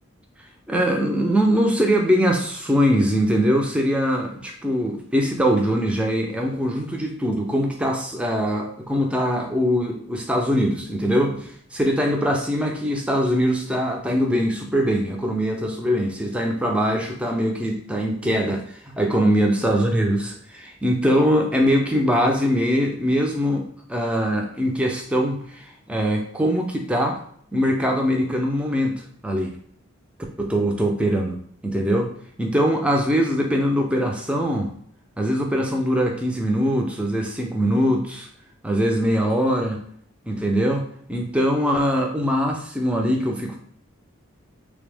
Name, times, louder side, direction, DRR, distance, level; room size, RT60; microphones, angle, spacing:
voice 1, 0.7-27.2 27.5-29.5 30.4-31.4 31.6-32.1 32.4-34.7 35.2-38.3 38.6-39.8 40.3-43.6, equal, 5° right, 1 dB, 0.3 m, -22 dB
3.3 x 2.0 x 3.3 m, 0.62 s
head